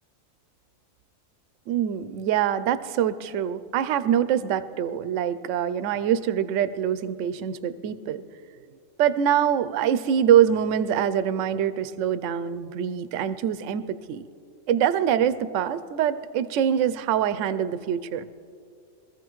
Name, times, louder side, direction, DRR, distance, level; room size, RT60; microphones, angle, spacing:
voice 1, 1.7-8.2 9.0-14.2 14.7-18.3, right 9 dB, 70° right, 12 dB, 0.9 m, -24 dB
23.5 x 14.5 x 3.1 m, 2.4 s
omnidirectional pair, 1.4 m